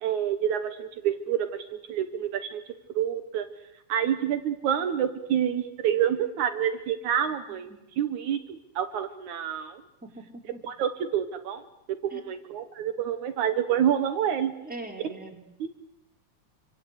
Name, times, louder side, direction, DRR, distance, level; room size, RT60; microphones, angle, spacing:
voice 1, 0.0-2.6 3.0-3.5 3.9-7.7 8.0-9.8 10.6-11.6 12.0-14.5 15.6-15.7, right 9 dB, 75° right, 8 dB, 2.7 m, -28 dB
voice 2, 10.0-10.6 12.1-12.2 14.6-15.4, right 2 dB, 5° right, 1 dB, 4.1 m, -41 dB
27.5 x 25.0 x 8.4 m, 0.88 s
omnidirectional pair, 3.5 m